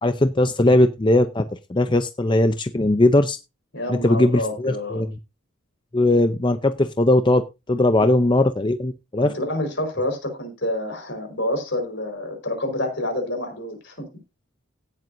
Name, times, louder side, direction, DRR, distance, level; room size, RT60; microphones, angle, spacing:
voice 1, 0.0-3.4 3.9-5.1 5.9-7.4 7.7-9.3, left 1 dB, 20° left, 0.6 m, -19 dB
voice 2, 3.7-5.0 9.2-14.1, left 1 dB, 55° left, 4.8 m, -28 dB
17.0 x 7.6 x 2.7 m
head